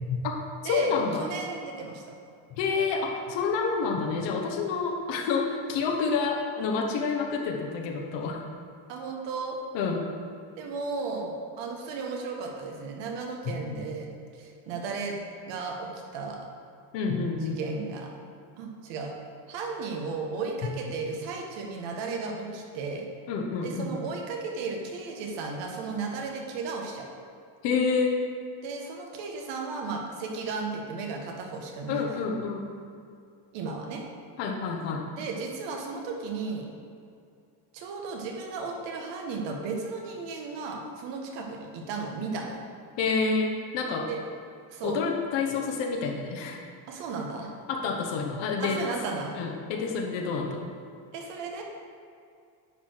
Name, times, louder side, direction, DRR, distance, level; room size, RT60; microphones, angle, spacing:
voice 1, 0.6-1.2 2.5-8.4 9.7-10.1 16.9-17.6 23.3-23.9 27.6-28.2 31.9-32.7 34.4-35.1 43.0-44.1 44.8-46.6 47.7-48.8 49.3-50.7, left 5 dB, 75° left, 1 dB, 1.2 m, -28 dB
voice 2, 1.2-2.1 8.9-9.6 10.6-14.1 14.4-15.1 15.5-16.4 17.6-18.1 18.6-19.1 19.5-23.1 23.6-27.1 28.6-32.2 33.5-34.0 35.1-36.7 37.7-42.6 44.1-44.2 44.7-45.0 46.9-47.5 48.6-49.4 51.1-51.6, right 4 dB, 80° right, 1 dB, 1.5 m, -35 dB
9.9 x 4.7 x 4.6 m, 2.4 s
cardioid pair, 135°, 43 cm